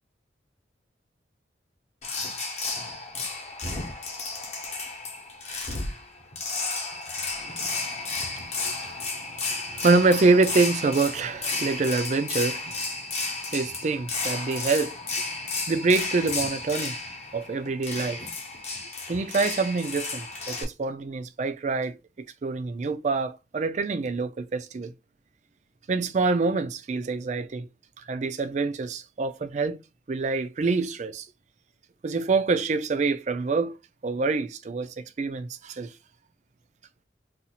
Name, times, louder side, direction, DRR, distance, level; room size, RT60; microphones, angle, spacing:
sound 1, 2.0-20.6, left 3 dB, 35° left, 0.8 m, -33 dB
voice 1, 7.4-9.1 9.4-12.9 13.5-15.0 15.7-17.0 17.3-18.2 19.1-24.9 25.9-27.7 28.0-29.8 30.1-31.3 32.0-33.8 34.0-35.9, right 3 dB, 40° right, 0.3 m, -26 dB
2.8 x 2.4 x 4.1 m
head